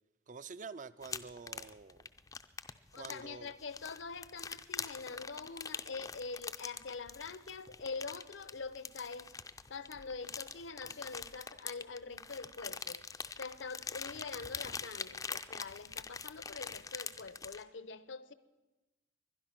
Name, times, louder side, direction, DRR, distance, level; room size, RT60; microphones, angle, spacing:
voice 1, 0.3-2.0 2.9-3.5, right 5 dB, 40° right, 16 dB, 0.5 m, -48 dB
sound 1, 1.0-17.6, left 5 dB, 20° left, 0.4 m, -44 dB
voice 2, 2.9-9.3 9.7-13.0 13.4-18.3, left 4 dB, 75° left, 14 dB, 0.8 m, -44 dB
21.0 x 11.5 x 6.0 m, 1.1 s
head